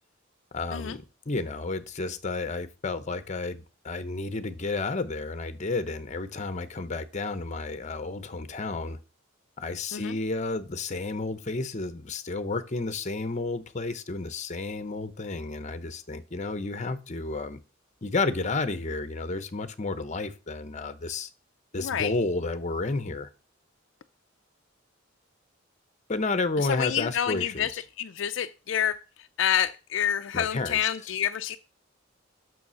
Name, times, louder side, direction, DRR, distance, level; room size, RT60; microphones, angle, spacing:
voice 1, 0.5-9.0 9.6-17.6 18.0-21.3 21.7-23.3 26.1-27.8 30.3-30.8, left 3 dB, 35° left, 0.8 m, -31 dB
voice 2, 26.7-27.7 28.0-29.0 29.4-31.6, left 9 dB, 65° left, 0.4 m, -28 dB
6.9 x 6.3 x 6.3 m
head